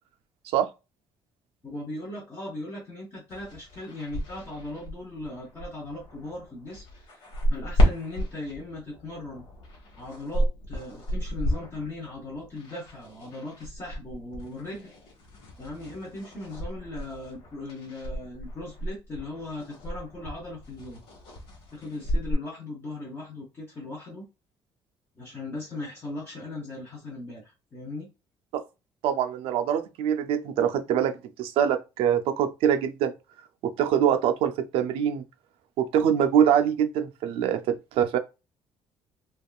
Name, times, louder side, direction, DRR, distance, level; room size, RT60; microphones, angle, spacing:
voice 1, 1.6-9.4 10.0-14.9 15.6-21.0 21.7-24.2 25.2-28.1, left 2 dB, 25° left, 0.8 m, -38 dB
sound 1, 3.3-22.3, equal, 85° left, 1.2 m, -32 dB
voice 2, 29.0-33.1 33.6-35.2 35.8-38.2, right 9 dB, 80° right, 0.5 m, -24 dB
3.5 x 2.4 x 2.3 m
cardioid pair, 170°, 9 cm